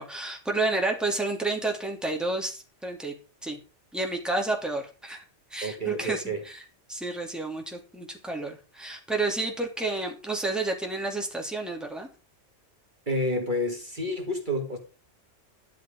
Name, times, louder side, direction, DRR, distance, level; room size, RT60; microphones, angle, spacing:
voice 1, 0.0-3.1 3.4-3.6 3.9-5.2 5.5-6.6 6.9-12.1, right 2 dB, ahead, 2.8 m, -30 dB
voice 2, 5.6-6.4 13.1-14.8, equal, 40° right, 2.4 m, -29 dB
13.0 x 12.0 x 3.8 m
omnidirectional pair, 1.2 m